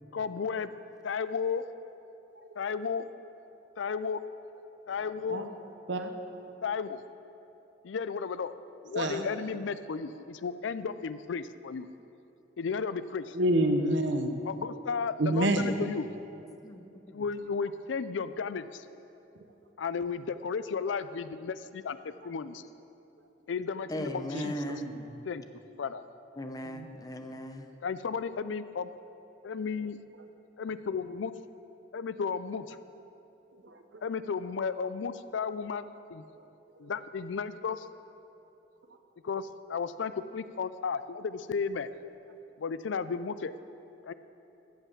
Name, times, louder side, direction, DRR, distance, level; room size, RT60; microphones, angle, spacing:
voice 1, 0.1-0.7 1.0-1.6 2.6-3.1 3.8-4.2 4.9-5.4 6.6-7.0 7.8-8.5 8.8-11.9 12.6-13.4 14.5-16.1 17.1-18.8 19.8-22.6 23.5-24.6 25.3-25.4 25.8-26.0 27.8-28.9 29.4-30.0 30.6-31.3 31.9-32.8 34.0-36.2 36.8-37.9 39.2-41.9 42.6-43.5 44.0-44.1, left 5 dB, 80° left, 13 dB, 0.4 m, -34 dB
voice 2, 9.0-9.3 13.3-14.4 15.2-15.7 22.2-22.3 24.3-25.2 26.6-26.9 33.5-34.0 36.3-36.4 36.8-36.9, right 1 dB, 75° right, 6 dB, 0.9 m, -29 dB
voice 3, 16.6-17.2 23.9-24.9 26.4-27.7, left 1 dB, 20° left, 6 dB, 0.7 m, -38 dB
14.5 x 5.7 x 7.2 m, 2.8 s
head